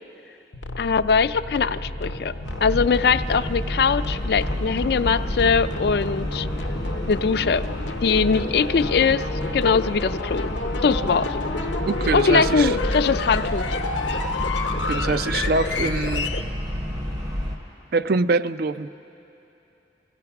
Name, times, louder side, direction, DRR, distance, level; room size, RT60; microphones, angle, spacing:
sound 1, 0.5-16.4, left 2 dB, 85° left, 0.8 m, -30 dB
voice 1, 0.8-2.3 2.6-6.5 7.1-7.6 8.0-9.3 9.5-10.5 10.8-11.4 12.1-13.7, left 5 dB, 60° left, 12 dB, 0.4 m, -21 dB
sound 2, 2.4-17.6, equal, 20° right, 0.7 m, -30 dB
Gull seagull / Ocean, 4.1-17.5, left 1 dB, 90° right, 6.9 m, -41 dB
voice 2, 11.9-12.7 14.8-16.3 17.9-18.9, right 3 dB, 55° right, 12 dB, 0.4 m, -24 dB
28.5 x 17.0 x 5.9 m, 2.9 s
head